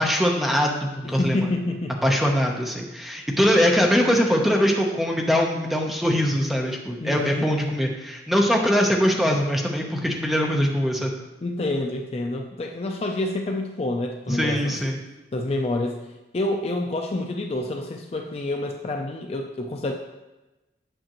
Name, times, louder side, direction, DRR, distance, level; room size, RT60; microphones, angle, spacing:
voice 1, 0.0-1.4 2.0-11.1 14.3-15.0, equal, ahead, 0 dB, 0.7 m, -22 dB
voice 2, 1.0-1.9 7.0-7.5 11.4-14.7 15.3-16.1 16.3-19.9, left 2 dB, 35° left, 3 dB, 0.4 m, -28 dB
8.9 x 5.8 x 3.0 m, 1.1 s
head